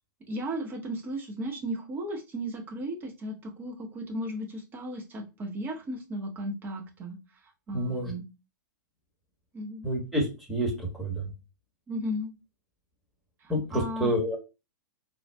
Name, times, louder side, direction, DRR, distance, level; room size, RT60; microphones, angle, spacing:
voice 1, 0.3-7.2 7.7-8.3 9.5-9.9 11.9-12.3 13.4-14.1, equal, 20° right, 3 dB, 0.8 m, -35 dB
voice 2, 7.7-8.1 9.8-11.3 13.5-14.4, equal, ahead, -1 dB, 1.2 m, -29 dB
3.8 x 2.4 x 2.2 m, 0.27 s
figure-of-eight pair, 105°, 11 cm